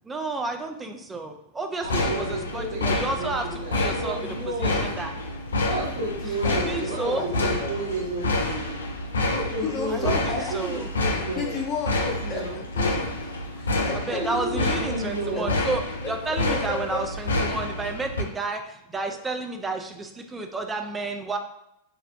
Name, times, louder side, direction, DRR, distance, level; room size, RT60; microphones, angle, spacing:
voice 1, 0.1-3.5 3.7-4.2 4.6-5.1 6.5-7.2 9.9-10.2 10.5-10.9 14.1-15.8 16.1-21.4, right 3 dB, 15° right, 5 dB, 0.3 m, -31 dB
sound 1, 1.8-18.2, left 2 dB, 75° left, 0.3 m, -28 dB
voice 2, 1.8-4.9 5.6-8.7 9.2-11.6 11.9-12.6 14.1-15.6, right 1 dB, 50° right, -5 dB, 1.1 m, -32 dB
voice 3, 6.4-7.2 7.6-7.7 9.6-10.6 11.4-12.0 12.3-13.1 13.6-15.0 15.3-15.4 16.0-17.0, left 3 dB, 30° left, -1 dB, 0.6 m, -33 dB
2.4 x 2.1 x 2.6 m, 0.80 s
figure-of-eight pair, 90°, 0 cm